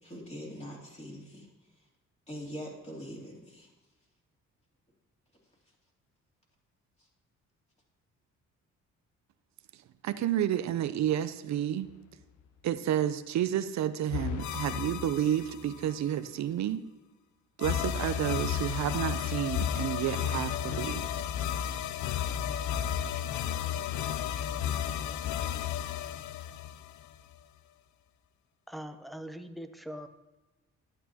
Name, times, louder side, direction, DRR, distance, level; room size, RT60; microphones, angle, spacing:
voice 1, 0.0-1.5 2.3-3.7, equal, 20° left, -2 dB, 2.9 m, -43 dB
voice 2, 10.0-11.9 12.6-16.8 17.6-21.1, right 11 dB, 65° right, 12 dB, 0.6 m, -30 dB
sound 1, 14.1-16.0 17.6-27.3, left 9 dB, 70° left, 0.5 m, -33 dB
voice 3, 28.7-30.1, equal, ahead, 8 dB, 0.7 m, -42 dB
11.5 x 9.1 x 2.8 m, 1.1 s
cardioid pair, 90°, 30 cm